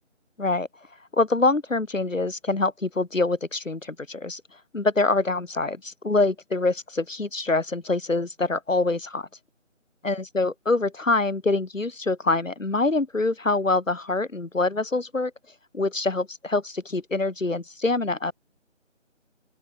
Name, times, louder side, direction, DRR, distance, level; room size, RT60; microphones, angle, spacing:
voice 1, 1.1-4.4 4.7-9.3 10.0-15.3 15.7-18.3, left 3 dB, 80° left, 5.1 m, -25 dB
open air
figure-of-eight pair, 165°, 38 cm